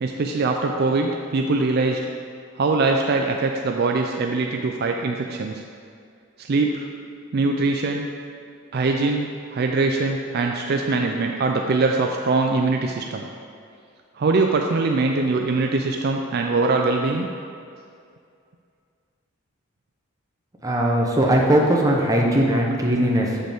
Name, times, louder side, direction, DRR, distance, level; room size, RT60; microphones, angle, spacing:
voice 1, 0.0-2.1 2.6-5.6 6.4-6.9 7.3-8.1 8.7-13.3 14.2-17.3, right 3 dB, 45° right, 2 dB, 0.4 m, -22 dB
voice 2, 20.6-23.5, right 1 dB, 15° right, -2 dB, 0.8 m, -19 dB
7.6 x 6.4 x 3.5 m, 2.4 s
head